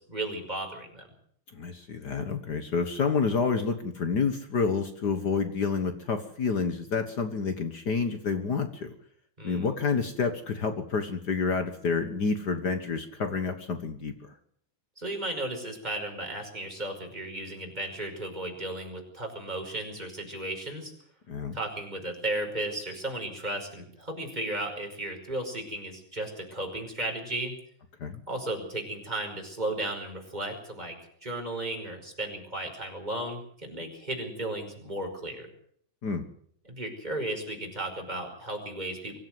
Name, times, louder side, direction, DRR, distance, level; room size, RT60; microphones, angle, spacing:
voice 1, 0.1-1.1 9.4-9.7 15.0-20.9 21.5-27.5 28.3-31.0 31.2-35.5 36.6-39.2, right 1 dB, 10° right, 2 dB, 5.2 m, -35 dB
voice 2, 1.5-8.9 9.4-14.3 21.3-21.6 28.0-28.2 36.0-36.2, left 5 dB, 90° left, 8 dB, 0.9 m, -29 dB
24.0 x 14.5 x 7.9 m, 0.64 s
omnidirectional pair, 4.2 m